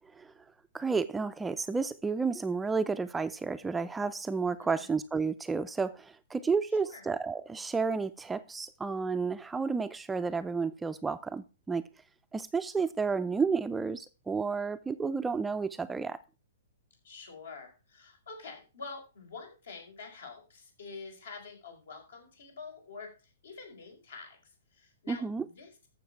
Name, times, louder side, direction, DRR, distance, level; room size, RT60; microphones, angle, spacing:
voice 1, 0.0-0.4 0.7-11.9 12.3-16.2 25.1-25.4, right 4 dB, 10° right, 0.5 m, -31 dB
voice 2, 4.6-4.9 6.8-7.0 17.0-25.9, left 4 dB, 65° left, 5.1 m, -47 dB
14.0 x 6.5 x 4.7 m
figure-of-eight pair, 115°, 0 cm